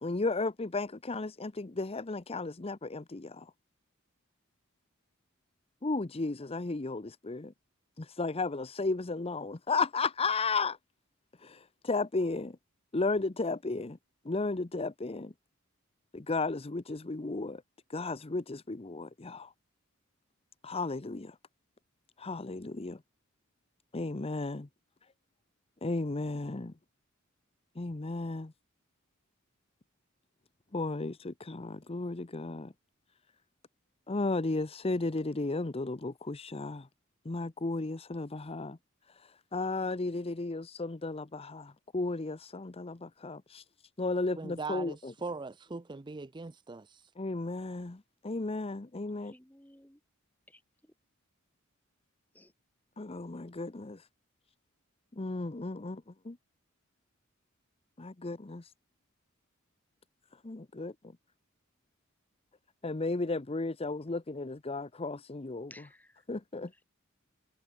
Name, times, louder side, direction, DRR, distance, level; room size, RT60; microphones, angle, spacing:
voice 1, 0.0-3.5 5.8-7.5 8.0-10.8 11.4-12.6 12.9-14.0 14.2-15.3 16.1-17.6 17.9-19.5 20.6-21.4 22.2-23.0 23.9-24.7 25.8-26.7 27.8-28.5 30.7-32.7 34.1-36.9 37.2-38.8 39.1-43.6 44.0-45.1 47.2-49.3 53.0-54.1 55.1-56.4 58.0-58.7 60.4-60.9 62.8-65.7 66.3-66.7, left 3 dB, 30° left, 0.7 m, -34 dB
voice 2, 44.4-47.1, right 3 dB, 20° right, 0.5 m, -40 dB
voice 3, 49.2-50.0 50.5-50.9 52.3-52.5 65.7-66.2 66.7-66.8, left 1 dB, 10° left, 5.7 m, -57 dB
head